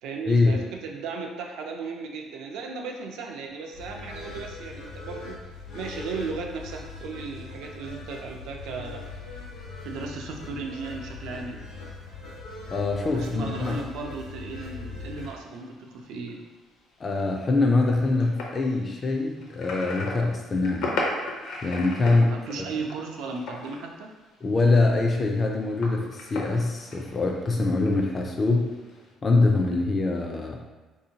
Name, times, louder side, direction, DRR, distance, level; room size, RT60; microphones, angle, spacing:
voice 1, 0.0-5.4 5.7-9.5 9.8-11.7 13.1-16.4 22.3-24.1, right 4 dB, 80° right, 2 dB, 0.4 m, -36 dB
sound 1, 3.7-15.3, left 3 dB, 90° left, 0.9 m, -40 dB
voice 2, 12.7-13.8 17.0-20.9 21.6-22.3 24.4-28.7 29.2-30.6, left 3 dB, 25° left, 0 dB, 0.3 m, -23 dB
sound 2, 14.5-14.7 15.1-23.9 24.2-24.8 25.1-27.9 28.5-29.1, left 2 dB, 65° left, 0.6 m, -36 dB
3.6 x 2.7 x 2.7 m, 1.2 s
cardioid pair, 170°, 0 cm